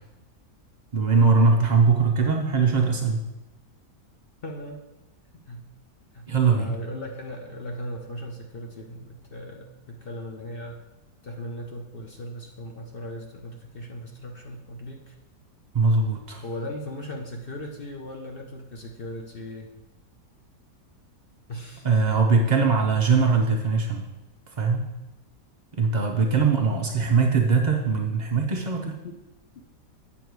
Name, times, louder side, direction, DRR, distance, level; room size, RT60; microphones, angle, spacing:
voice 1, 0.9-3.2 6.3-6.7 15.7-16.4 21.8-24.0 24.6-24.8 25.7-28.9, right 4 dB, 65° right, 0 dB, 0.4 m, -21 dB
voice 2, 1.5-2.0 4.4-4.8 5.5-5.6 6.1-10.8 11.2-15.1 16.4-19.7 21.5-21.9 29.0-29.1, left 1 dB, 45° left, 1 dB, 0.7 m, -38 dB
8.7 x 5.9 x 4.7 m, 1.0 s
omnidirectional pair, 1.8 m